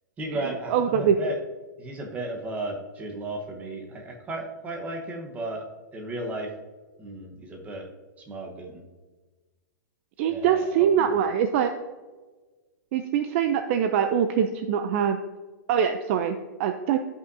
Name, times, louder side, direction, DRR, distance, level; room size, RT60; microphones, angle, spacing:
voice 1, 0.2-1.4 1.8-6.5 7.0-7.9 8.3-8.9 10.3-11.3, right 2 dB, 15° right, 1 dB, 1.1 m, -35 dB
voice 2, 0.7-1.1 10.2-11.7 12.9-15.2 15.7-17.0, right 8 dB, 40° right, 7 dB, 0.4 m, -23 dB
12.0 x 5.6 x 2.7 m, 1.3 s
hypercardioid pair, 155°, 10 cm